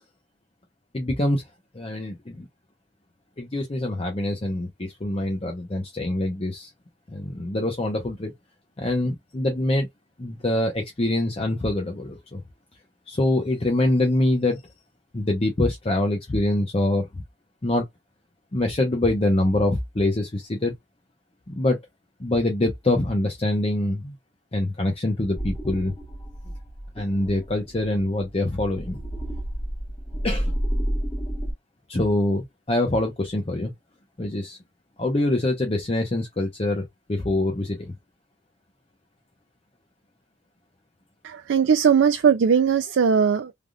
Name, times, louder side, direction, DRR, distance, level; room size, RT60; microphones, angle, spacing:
voice 1, 0.9-1.4 1.7-2.5 3.4-6.7 7.1-8.3 8.8-9.9 10.2-12.4 13.1-14.6 15.1-17.2 17.6-17.8 18.5-20.7 21.5-21.8 22.2-24.1 24.5-25.9 27.0-29.0 30.2-30.5 31.9-33.7 34.2-34.6 35.0-36.8 37.1-37.9, left 1 dB, 30° left, 0.7 m, -24 dB
sound 1, 25.3-31.5, equal, 15° left, 1.6 m, -31 dB
voice 2, 41.2-43.5, right 6 dB, 75° right, 0.4 m, -19 dB
3.4 x 2.5 x 2.3 m
head